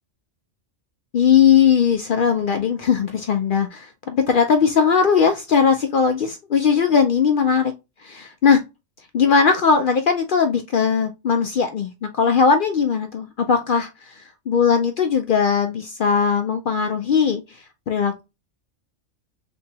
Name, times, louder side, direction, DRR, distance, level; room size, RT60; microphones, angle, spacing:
voice 1, 1.1-7.7 8.0-8.6 9.1-17.6 17.9-18.2, left 6 dB, 60° left, 0.6 m, -19 dB
3.5 x 3.0 x 2.7 m
omnidirectional pair, 1.3 m